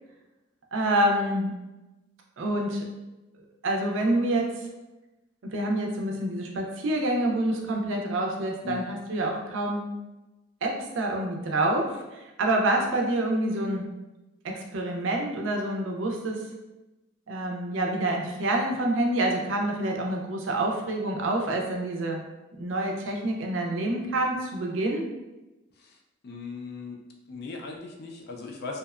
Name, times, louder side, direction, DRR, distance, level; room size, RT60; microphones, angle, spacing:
voice 1, 0.7-1.5 2.4-2.8 3.6-4.6 5.4-9.9 10.6-13.9 14.4-16.4 17.3-22.2 22.5-25.1, right 1 dB, 65° right, 1 dB, 0.4 m, -27 dB
voice 2, 26.2-27.0 27.3-28.8, left 4 dB, 50° left, 1 dB, 0.4 m, -38 dB
2.7 x 2.1 x 2.3 m, 1.0 s
head